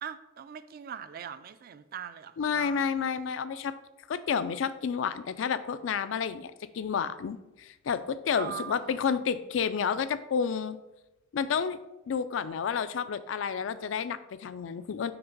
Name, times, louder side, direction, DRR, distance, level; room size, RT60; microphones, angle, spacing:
voice 1, 0.0-2.8 8.3-9.2, right 8 dB, 50° right, 13 dB, 0.3 m, -41 dB
voice 2, 2.4-3.7 4.1-10.8 11.3-11.8 12.1-15.1, left 6 dB, 75° left, 13 dB, 0.4 m, -30 dB
5.9 x 3.4 x 5.3 m, 0.96 s
head